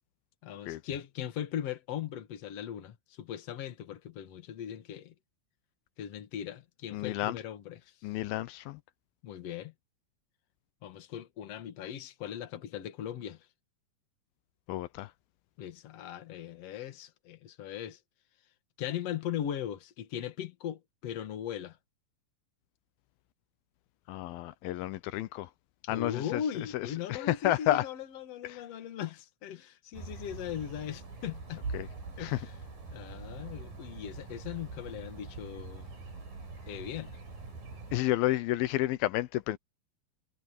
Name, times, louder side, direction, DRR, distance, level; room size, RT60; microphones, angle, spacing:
voice 1, 0.4-5.1 6.0-7.9 9.2-9.7 10.8-13.5 15.6-18.0 18.8-21.8 25.8-31.6 32.2-32.6 32.9-35.9 36.7-37.1, left 9 dB, 50° left, 2.4 m, -39 dB
voice 2, 6.9-7.4 8.0-8.8 14.7-15.1 24.1-25.5 25.9-26.4 26.7-27.8 31.7-31.9 32.2-32.4 37.9-39.6, left 15 dB, 85° left, 2.6 m, -30 dB
sound 1, 29.9-38.0, right 3 dB, 65° right, 8.2 m, -43 dB
omnidirectional pair, 4.2 m